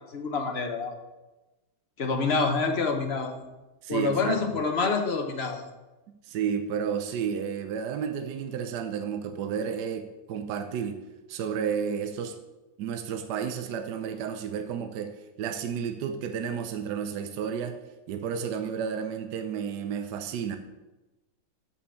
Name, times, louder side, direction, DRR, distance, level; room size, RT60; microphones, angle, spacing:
voice 1, 0.1-0.9 2.0-3.4 3.9-5.6, left 4 dB, 45° left, 4 dB, 1.0 m, -27 dB
voice 2, 3.8-4.6 6.2-11.0 11.3-12.3 12.8-17.8 18.1-20.6, right 7 dB, 70° right, 6 dB, 1.2 m, -31 dB
6.3 x 5.8 x 7.0 m, 1.1 s
omnidirectional pair, 2.0 m